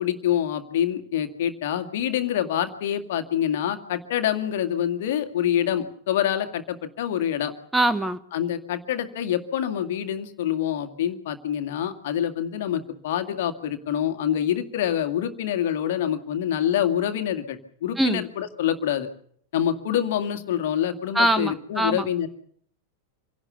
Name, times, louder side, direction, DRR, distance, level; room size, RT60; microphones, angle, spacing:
voice 1, 0.0-7.5 8.3-19.1 19.5-22.3, left 10 dB, 55° left, 7 dB, 2.1 m, -26 dB
voice 2, 7.7-8.2 18.0-18.2 21.1-22.1, right 1 dB, 5° right, 11 dB, 1.0 m, -22 dB
27.0 x 17.5 x 6.9 m, 0.63 s
figure-of-eight pair, 90°, 0 cm